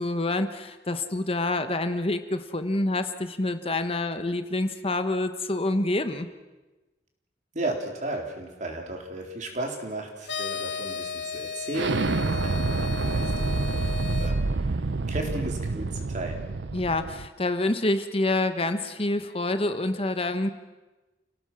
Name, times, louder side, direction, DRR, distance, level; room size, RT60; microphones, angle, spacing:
voice 1, 0.0-6.3 16.7-20.5, left 2 dB, 35° left, 9 dB, 1.1 m, -27 dB
voice 2, 7.5-14.8 15.1-16.4, right 2 dB, 45° right, 2 dB, 4.0 m, -35 dB
sound 1, 10.2-14.3, left 6 dB, 75° left, 2.0 m, -35 dB
Explosion, 11.7-17.3, right 3 dB, 85° right, 0.7 m, -28 dB
29.5 x 17.5 x 6.2 m, 1.1 s
head